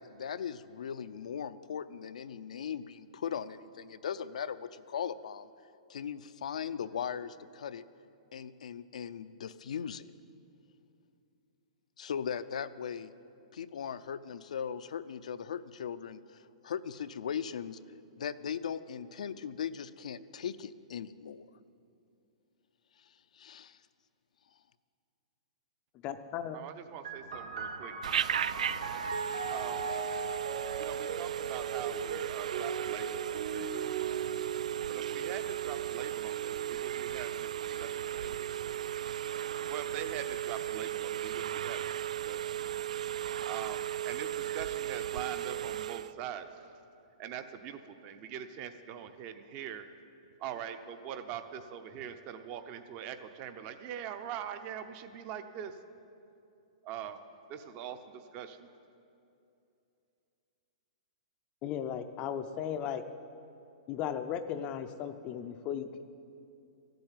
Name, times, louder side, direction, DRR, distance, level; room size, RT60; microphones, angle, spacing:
voice 1, 0.0-5.5 5.9-7.8 8.3-10.1 12.0-13.1 13.5-17.8 18.2-21.5 23.3-23.8, left 8 dB, 80° left, 12 dB, 0.5 m, -38 dB
voice 2, 26.0-26.6 61.6-63.0 63.9-66.0, left 9 dB, 25° left, 8 dB, 0.5 m, -36 dB
voice 3, 26.5-27.9 29.5-29.9 30.8-33.8 34.9-37.5 37.8-38.6 39.7-42.5 43.5-46.8 47.2-49.9 50.4-55.8 56.8-57.2 57.5-58.7, right 9 dB, 30° right, 10 dB, 0.7 m, -43 dB
sound 1, 27.0-40.3 41.1-41.9, right 5 dB, 70° right, 2.3 m, -40 dB
Telephone, 28.0-46.1, right 11 dB, 85° right, 0.3 m, -36 dB
14.0 x 7.8 x 9.0 m, 2.6 s
hypercardioid pair, 165°, 4 cm